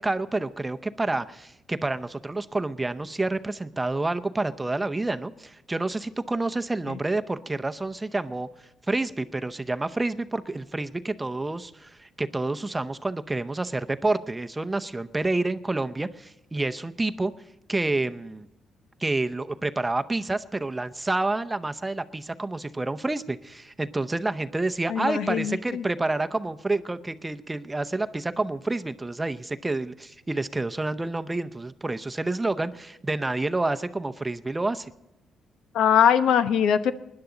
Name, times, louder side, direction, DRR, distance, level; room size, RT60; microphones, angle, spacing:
voice 1, 0.0-8.5 8.9-17.3 17.7-18.5 19.0-34.9, right 2 dB, 15° right, 10 dB, 0.7 m, -28 dB
voice 2, 24.9-25.8 35.7-36.9, left 8 dB, 80° left, 12 dB, 0.8 m, -21 dB
20.0 x 10.5 x 3.9 m, 0.88 s
cardioid pair, 90°, 0 cm